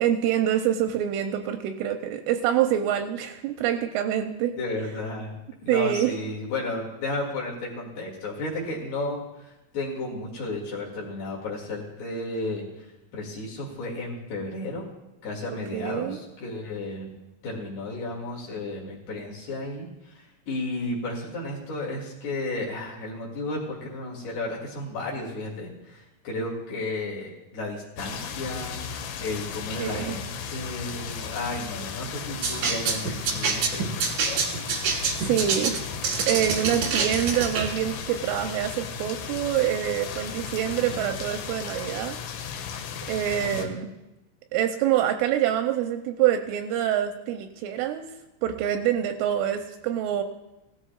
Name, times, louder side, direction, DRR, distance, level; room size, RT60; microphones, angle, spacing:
voice 1, 0.0-4.5 5.7-6.1 15.7-16.2 29.8-30.2 35.2-35.8 36.3-42.2 43.1-43.9 44.5-48.1 48.4-50.2, right 10 dB, 85° right, 6 dB, 2.9 m, -26 dB
voice 2, 4.6-5.4 5.6-14.9 15.2-17.1 17.4-34.5 40.7-41.0 43.4-43.8, left 2 dB, 60° left, -3 dB, 3.5 m, -33 dB
sound 1, 28.0-43.7, left 7 dB, 80° left, 3.5 m, -36 dB
sound 2, 32.4-37.7, right 5 dB, 70° right, 2.0 m, -26 dB
17.5 x 13.5 x 2.3 m, 0.97 s
omnidirectional pair, 5.9 m